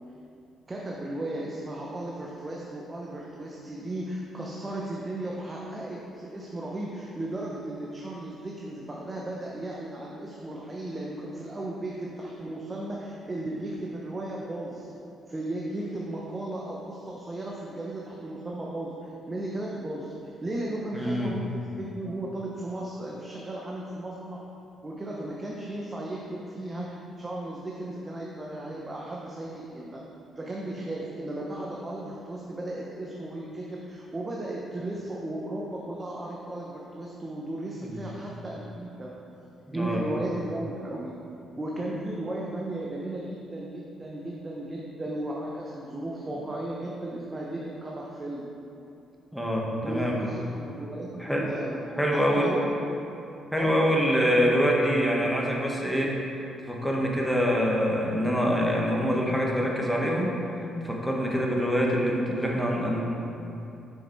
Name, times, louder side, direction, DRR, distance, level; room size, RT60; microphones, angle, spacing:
voice 1, 0.7-14.9 15.3-20.1 20.4-24.4 24.8-30.0 30.4-39.1 39.7-41.1 41.6-48.5 49.8-51.8 52.1-53.0 53.5-53.9 54.2-54.3, right 1 dB, 25° right, -3 dB, 0.9 m, -35 dB
voice 2, 20.9-21.3 37.8-38.0 39.7-40.0 49.3-50.2 51.2-51.5 52.0-52.5 53.5-60.4 60.8-63.0, equal, ahead, -2 dB, 1.3 m, -25 dB
6.9 x 5.9 x 4.5 m, 2.8 s
cardioid pair, 90°, 0 cm